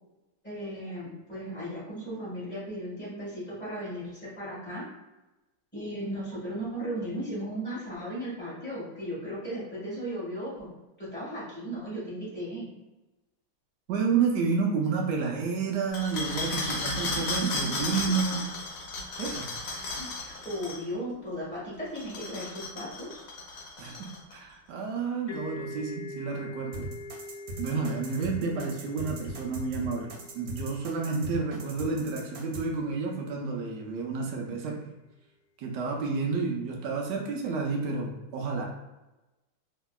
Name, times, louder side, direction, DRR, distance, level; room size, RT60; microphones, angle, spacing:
voice 1, 0.4-4.8 5.7-12.7 17.1-17.5 19.7-23.2, equal, 5° left, -8 dB, 1.0 m, -36 dB
voice 2, 13.9-18.4 19.2-19.5 23.8-26.9 27.6-35.0 35.6-38.7, right 4 dB, 85° right, 0 dB, 0.9 m, -30 dB
sound 1, 15.9-20.8 21.9-24.3, left 2 dB, 65° left, 1.1 m, -34 dB
sound 2, 25.3-32.8, left 2 dB, 85° left, 0.7 m, -45 dB
sound 3, 26.7-32.6, right 1 dB, 65° right, 1.2 m, -39 dB
3.2 x 2.7 x 2.2 m, 1.0 s
omnidirectional pair, 2.4 m